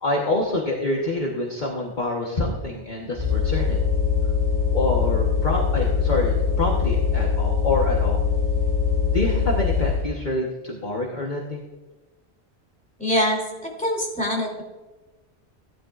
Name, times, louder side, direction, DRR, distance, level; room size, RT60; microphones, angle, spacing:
voice 1, 0.0-3.8 4.7-8.2 9.1-11.7, left 2 dB, 40° left, -1 dB, 1.3 m, -26 dB
sound 1, 3.2-10.1, left 6 dB, 30° right, 1.4 m, -22 dB
voice 2, 13.0-14.6, equal, 5° left, -2 dB, 2.9 m, -24 dB
15.5 x 11.0 x 2.5 m, 1.1 s
omnidirectional pair, 1.2 m